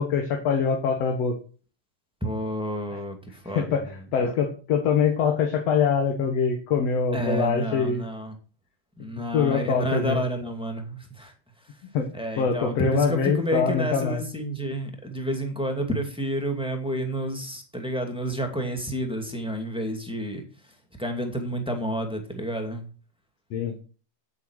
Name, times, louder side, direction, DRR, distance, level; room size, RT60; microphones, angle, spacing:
voice 1, 0.0-1.3 3.5-3.8 4.1-8.0 9.3-10.2 11.9-12.1 12.4-14.2 23.5-23.7, left 6 dB, 60° left, 3 dB, 2.5 m, -24 dB
voice 2, 2.2-3.9 4.2-4.3 7.1-8.4 9.0-11.3 12.1-20.4 21.0-22.9, right 1 dB, ahead, 3 dB, 1.8 m, -30 dB
9.5 x 8.4 x 6.3 m, 0.37 s
omnidirectional pair, 3.3 m